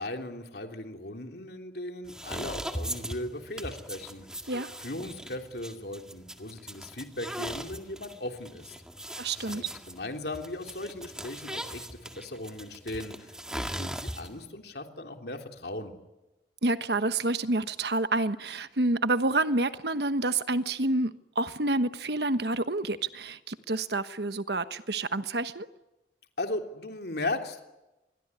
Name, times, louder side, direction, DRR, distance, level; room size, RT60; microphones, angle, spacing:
voice 1, 0.0-4.3 4.8-8.7 9.4-15.9 26.4-27.6, left 2 dB, 65° left, 3.3 m, -37 dB
sound 1, 2.0-14.5, right 1 dB, 5° right, 1.9 m, -40 dB
voice 2, 9.2-9.7 16.6-25.7, right 2 dB, 65° right, 1.2 m, -28 dB
27.5 x 22.0 x 9.8 m
head